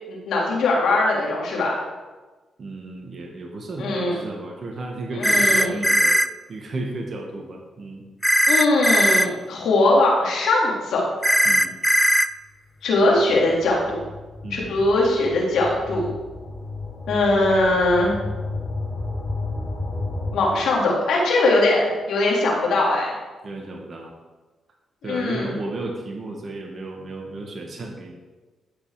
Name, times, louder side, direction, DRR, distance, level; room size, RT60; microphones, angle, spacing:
voice 1, 0.0-1.8 3.8-4.2 5.1-5.8 8.5-11.0 12.8-14.0 14.5-16.1 17.1-18.1 20.3-23.1 25.0-25.5, left 2 dB, 80° left, -3 dB, 3.2 m, -20 dB
voice 2, 2.6-6.2 6.5-8.0 11.4-11.7 14.4-14.8 23.4-24.1 25.0-28.1, right 2 dB, 50° right, 0 dB, 2.0 m, -33 dB
sound 1, 5.2-6.3 8.2-9.3 11.2-12.3, equal, ahead, 0.5 m, -18 dB
sound 2, 13.0-20.3, left 2 dB, 25° left, 3.2 m, -32 dB
13.0 x 5.7 x 5.1 m, 1.2 s
supercardioid pair, 60°, 0 cm